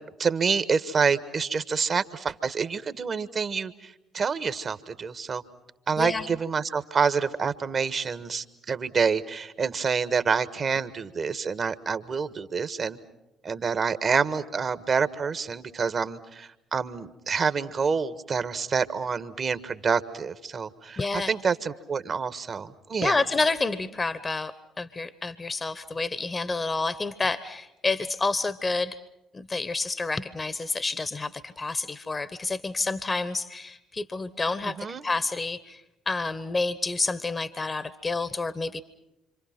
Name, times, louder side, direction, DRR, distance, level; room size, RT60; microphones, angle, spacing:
voice 1, 0.2-5.4 5.9-13.0 13.4-23.2 34.8-35.0, right 5 dB, 40° right, 13 dB, 1.4 m, -27 dB
voice 2, 6.0-6.3 21.0-21.3 23.0-29.0 29.3-34.8 35.0-38.8, left 3 dB, 30° left, 15 dB, 1.1 m, -29 dB
27.0 x 27.0 x 6.0 m, 0.92 s
figure-of-eight pair, 45°, 0 cm